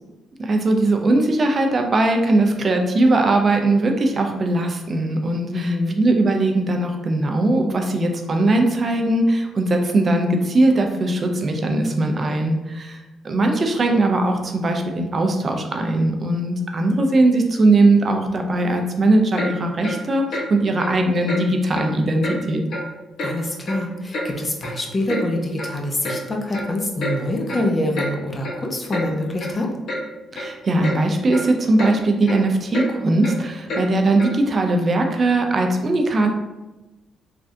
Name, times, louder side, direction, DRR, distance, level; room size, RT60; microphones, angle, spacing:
voice 1, 0.4-5.7 6.0-13.0 13.2-22.7 30.3-36.3, right 2 dB, 40° right, 4 dB, 0.4 m, -19 dB
voice 2, 5.5-6.0 23.2-29.7, left 1 dB, 25° left, 1 dB, 0.6 m, -25 dB
Clock, 19.3-19.5 19.8-20.0 20.3-20.5 20.8-20.9 21.3-21.4 21.7-21.9 22.2-22.4 22.7-22.9 23.2-23.3 23.6-24.3 24.6-24.7 25.1-25.2 25.6-25.7 26.0-26.2 26.5-26.7 27.0-27.1 27.5-27.6 27.9-28.1 28.4-28.6 28.9-29.1 29.4-29.5 29.9-30.0 30.3-30.5 30.8-31.0 31.3-31.4 31.8-31.9 32.2-32.4 32.7-32.9 33.2-33.3 33.7-33.8 34.2-34.3, left 1 dB, 65° left, 0.8 m, -28 dB
3.3 x 2.3 x 2.6 m, 1.1 s
cardioid pair, 90°, 0 cm